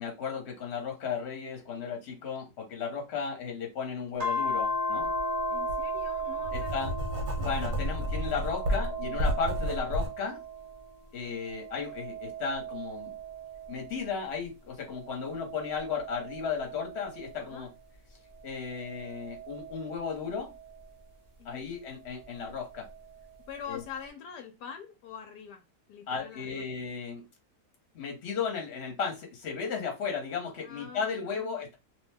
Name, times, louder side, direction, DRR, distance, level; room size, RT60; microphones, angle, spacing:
voice 1, 0.0-5.1 6.5-6.9 7.4-10.4 11.1-13.1 13.7-17.7 18.4-20.5 21.4-22.9 23.7-23.8 26.1-27.2 27.9-31.7, left 6 dB, 45° left, 1.2 m, -35 dB
sound 1, 4.2-10.9 11.4-14.3 14.9-17.6 18.4-20.8 22.2-23.2, equal, 55° right, 0.4 m, -37 dB
Writing, 5.0-5.2 5.7-10.1, equal, 75° right, 1.3 m, -31 dB
voice 2, 5.5-6.9 17.4-17.7 21.4-21.6 23.5-25.6 25.9-26.6 30.6-31.6, left 7 dB, 80° left, 1.2 m, -44 dB
2.9 x 2.2 x 3.4 m
omnidirectional pair, 1.7 m